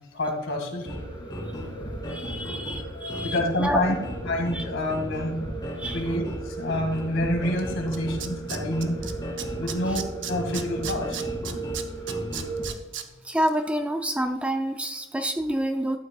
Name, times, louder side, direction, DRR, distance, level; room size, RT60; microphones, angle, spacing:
voice 1, 0.1-0.9 2.4-2.5 2.9-4.0 4.3-5.4 5.8-9.1 9.6-11.2, left 1 dB, 65° left, 2 dB, 2.0 m, -28 dB
sound 1, 0.8-12.7, right 1 dB, 20° left, 2.4 m, -34 dB
voice 2, 2.1-3.8 4.5-4.6 5.8-6.0 9.9-10.0 13.2-16.0, right 1 dB, 5° right, 6 dB, 0.4 m, -28 dB
Tools, 7.6-7.7 7.9-9.1 9.4-13.0 13.4-13.5, right 9 dB, 65° right, 0.8 m, -34 dB
12.5 x 8.6 x 2.3 m, 1.1 s
head